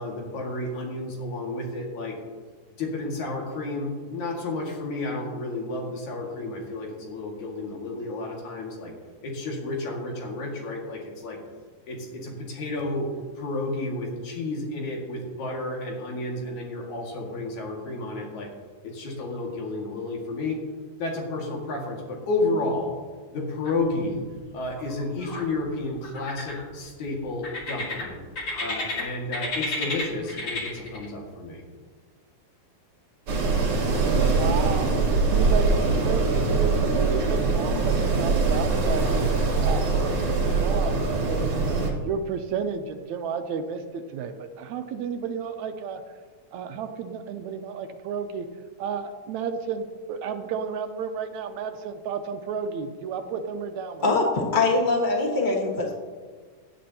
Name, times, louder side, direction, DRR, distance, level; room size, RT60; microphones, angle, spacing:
voice 1, 0.0-2.2 2.8-8.9 9.2-11.4 11.9-13.1 13.4-18.5 18.8-20.6 21.0-23.0 23.3-24.2 24.5-28.2 28.6-31.6, left 2 dB, 70° left, -1 dB, 3.4 m, -31 dB
sound 1, 23.6-24.2 24.5-25.4 26.0-26.9 27.4-29.0 29.3-31.1, left 2 dB, 40° left, 2.5 m, -32 dB
Wind, 33.3-41.9, right 3 dB, 50° right, 2.3 m, -23 dB
voice 2, 34.1-41.7 42.0-46.0 46.5-48.5 48.8-54.0, right 6 dB, 75° right, 8 dB, 1.9 m, -32 dB
voice 3, 54.0-55.9, left 3 dB, 85° left, -1 dB, 0.4 m, -23 dB
17.0 x 10.5 x 2.9 m, 1.5 s
omnidirectional pair, 3.5 m